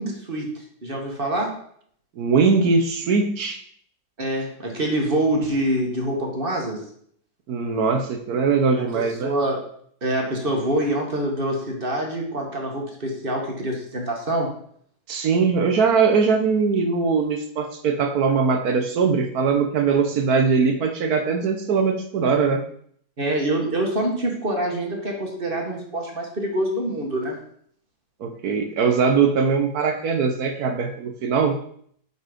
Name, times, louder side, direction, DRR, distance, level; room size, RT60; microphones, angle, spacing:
voice 1, 0.0-1.5 4.2-6.8 8.8-9.6 10.0-14.5 23.2-27.4, right 1 dB, 35° right, 1 dB, 1.5 m, -25 dB
voice 2, 2.2-3.6 7.5-9.3 15.1-22.6 28.2-31.6, right 5 dB, 65° right, 5 dB, 1.3 m, -21 dB
8.2 x 4.2 x 5.1 m, 0.63 s
omnidirectional pair, 1.8 m